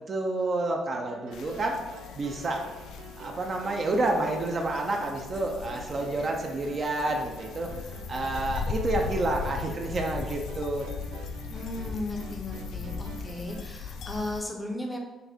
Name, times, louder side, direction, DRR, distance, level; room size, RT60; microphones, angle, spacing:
voice 1, 0.1-1.8 2.1-2.7 3.2-10.9, right 2 dB, 30° right, 2 dB, 0.5 m, -29 dB
sound 1, 0.9-13.8, right 4 dB, 80° right, 0.5 m, -47 dB
sound 2, 1.3-14.4, left 5 dB, 75° left, 0.4 m, -38 dB
voice 2, 11.5-15.0, left 1 dB, 10° left, 1 dB, 0.6 m, -35 dB
5.7 x 2.6 x 3.5 m, 1.1 s
cardioid pair, 155°, 0 cm